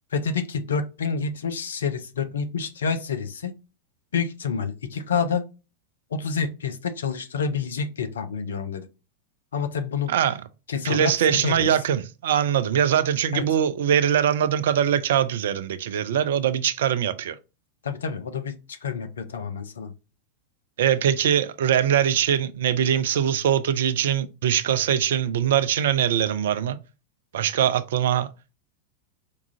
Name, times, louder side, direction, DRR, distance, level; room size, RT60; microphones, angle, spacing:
voice 1, 0.1-3.5 4.1-5.4 6.1-8.9 9.5-10.1 10.7-11.7 13.3-13.4 17.8-19.9, left 5 dB, 65° left, 0.5 m, -28 dB
voice 2, 10.8-17.4 20.8-26.8 27.3-28.3, right 9 dB, 60° right, 0.3 m, -22 dB
4.6 x 2.4 x 2.6 m
figure-of-eight pair, 90°, 0 cm